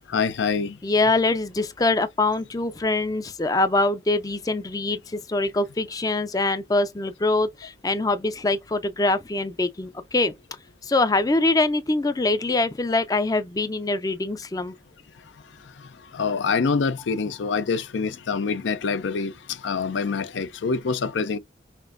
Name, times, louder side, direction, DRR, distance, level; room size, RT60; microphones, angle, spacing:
voice 1, 0.1-0.8 16.1-21.4, left 5 dB, 80° left, 0.5 m, -25 dB
voice 2, 0.8-5.0 5.3-10.3 10.9-14.7, left 2 dB, 20° left, 0.4 m, -23 dB
5.8 x 2.5 x 2.5 m
head